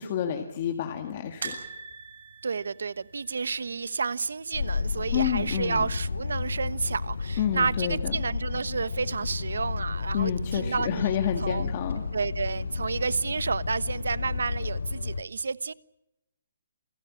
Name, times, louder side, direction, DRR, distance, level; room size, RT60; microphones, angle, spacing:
voice 1, 0.0-1.5 5.1-5.9 7.4-8.1 10.1-12.0, left 9 dB, 30° left, 1.9 m, -29 dB
sound 1, 1.4-4.5 4.7-4.9 5.2-5.3 6.5-7.1 7.6-7.7, right 5 dB, 65° right, 7.6 m, -42 dB
voice 2, 2.4-11.1 11.4-11.7 12.1-15.7, right 5 dB, 85° right, 1.1 m, -30 dB
sound 2, 4.5-15.2, left 4 dB, 85° left, 1.4 m, -32 dB
28.0 x 19.0 x 8.5 m
hypercardioid pair, 175°, 0 cm